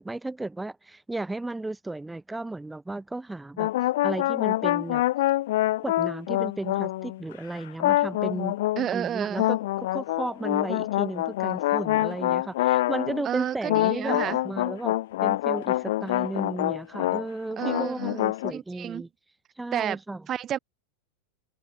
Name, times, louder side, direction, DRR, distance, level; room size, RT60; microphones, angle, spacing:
voice 1, 0.0-3.7 4.0-5.0 5.8-8.6 8.9-14.9 15.2-19.1 19.6-20.2, right 2 dB, 5° right, 6.6 m, -34 dB
sound 1, 3.6-7.3 7.8-8.9 9.4-13.3 13.7-17.3 17.5-18.5, left 16 dB, 55° left, 0.5 m, -26 dB
voice 2, 8.8-9.5 13.2-14.4 17.6-18.2 18.5-19.0 19.7-20.0 20.3-20.6, right 10 dB, 30° right, 7.7 m, -30 dB
open air
figure-of-eight pair, 90°, 0 cm